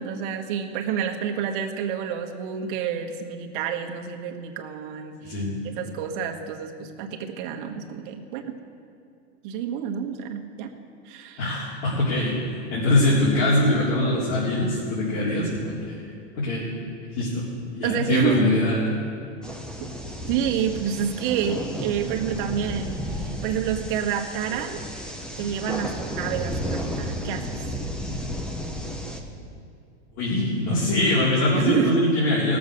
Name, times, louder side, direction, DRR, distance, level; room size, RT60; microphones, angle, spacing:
voice 1, 0.0-5.4 5.6-8.5 9.4-10.7 11.0-11.5 17.8-18.5 19.8-19.9 20.3-24.8 25.4-27.4 31.5-32.0, right 8 dB, 45° right, 3 dB, 1.4 m, -28 dB
voice 2, 11.4-16.7 17.2-17.4 17.7-18.9 30.2-32.6, left 1 dB, 55° left, -7 dB, 3.7 m, -23 dB
sound 1, 19.4-29.2, equal, ahead, 0.4 m, -33 dB
17.5 x 7.3 x 6.4 m, 2.4 s
supercardioid pair, 155°, 35 cm